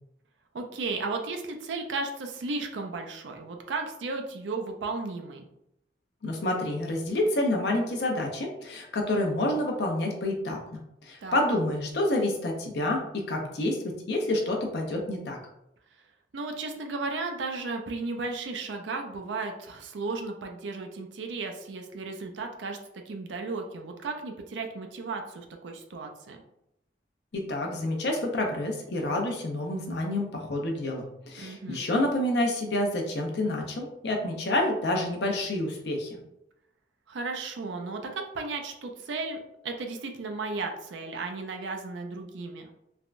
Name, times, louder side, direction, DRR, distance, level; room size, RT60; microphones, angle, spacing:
voice 1, 0.5-5.4 11.2-11.4 16.3-22.8 23.1-26.4 31.3-31.8 37.1-42.7, right 3 dB, 85° right, 4 dB, 0.4 m, -34 dB
voice 2, 6.2-15.4 27.3-36.2, left 1 dB, 65° left, 1 dB, 0.6 m, -28 dB
3.4 x 2.2 x 2.4 m, 0.82 s
head